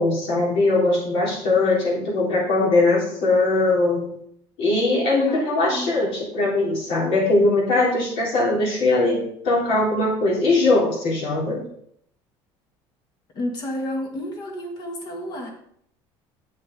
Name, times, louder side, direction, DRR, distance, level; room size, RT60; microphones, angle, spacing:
voice 1, 0.0-4.1 4.6-11.6, left 2 dB, 65° left, -3 dB, 3.6 m, -20 dB
voice 2, 5.2-5.9 13.3-15.5, left 1 dB, 45° left, 2 dB, 2.0 m, -30 dB
8.5 x 6.6 x 3.9 m, 0.67 s
cardioid pair, 140°, 10 cm